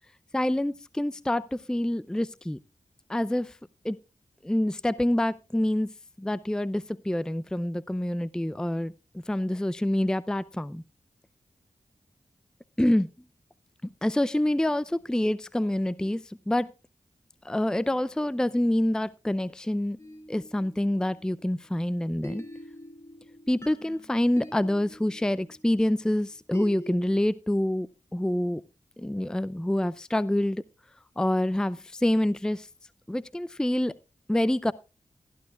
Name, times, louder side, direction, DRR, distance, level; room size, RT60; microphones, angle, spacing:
voice 1, 0.3-2.6 3.1-3.5 3.8-4.0 4.4-5.9 6.2-8.9 9.3-10.8 12.8-13.1 13.8-16.7 17.4-20.0 20.3-22.4 23.5-27.9 28.1-28.6 29.0-30.6 31.2-32.7 33.1-33.9 34.3-34.7, left 1 dB, 5° left, 17 dB, 0.5 m, -26 dB
sound 1, 20.0-21.8 22.2-27.1, left 1 dB, 20° left, 3.0 m, -45 dB
16.0 x 11.5 x 2.4 m, 0.30 s
cardioid pair, 45°, 13 cm